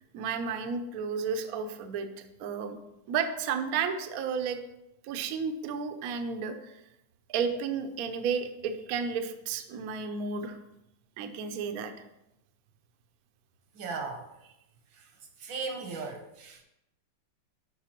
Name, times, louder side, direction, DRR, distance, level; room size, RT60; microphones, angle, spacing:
voice 1, 0.0-2.8 3.1-4.6 5.0-6.8 7.3-10.6 11.2-11.9, right 6 dB, 65° right, 7 dB, 0.9 m, -32 dB
voice 2, 13.7-14.3 14.9-15.1 15.4-16.6, right 4 dB, 85° right, 3 dB, 1.8 m, -37 dB
12.0 x 4.6 x 2.9 m, 0.89 s
omnidirectional pair, 2.1 m